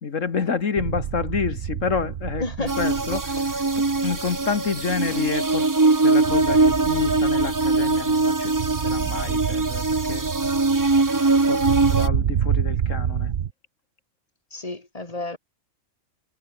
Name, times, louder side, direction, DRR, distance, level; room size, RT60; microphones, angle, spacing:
voice 1, 0.0-5.7 6.0-8.5 8.8-10.3 11.1-13.3, left 5 dB, 70° left, 2.0 m, -29 dB
sound 1, 0.8-13.5, right 9 dB, 55° right, 0.9 m, -29 dB
voice 2, 2.4-2.9 5.1-5.2 14.5-15.4, left 2 dB, 25° left, 3.1 m, -31 dB
sound 2, 2.7-12.1, right 3 dB, 20° right, 0.7 m, -21 dB
omnidirectional pair, 1.4 m